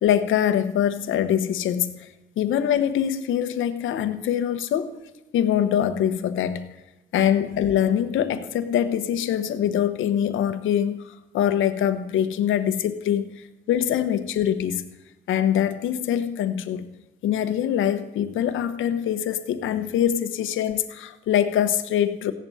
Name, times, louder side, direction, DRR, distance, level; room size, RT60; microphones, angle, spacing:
voice 1, 0.0-2.1 2.4-5.0 5.3-6.7 7.1-14.8 15.3-16.9 17.2-22.3, left 10 dB, 80° left, 1.1 m, -24 dB
15.5 x 11.0 x 4.2 m
cardioid pair, 90°, 20 cm